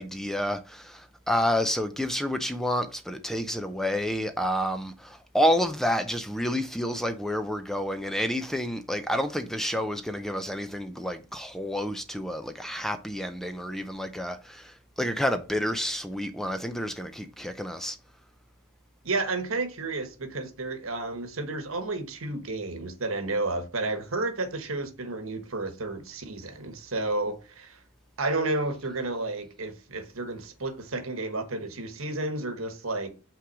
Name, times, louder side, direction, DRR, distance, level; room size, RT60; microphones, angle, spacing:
voice 1, 0.0-18.0, equal, ahead, 0.5 m, -29 dB
voice 2, 19.0-27.8 28.2-33.1, right 2 dB, 70° right, 1.3 m, -31 dB
5.7 x 3.8 x 6.0 m
head